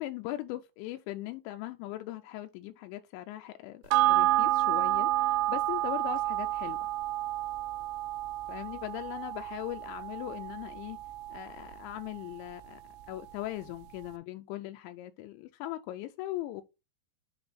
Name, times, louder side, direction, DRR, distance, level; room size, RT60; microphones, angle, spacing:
voice 1, 0.0-6.9 8.5-11.0 11.3-12.8 13.1-16.6, left 15 dB, 85° left, 2.8 m, -39 dB
sound 1, 3.9-12.7 13.0-13.1, right 16 dB, 85° right, 2.8 m, -30 dB
7.9 x 3.4 x 5.6 m
omnidirectional pair, 5.2 m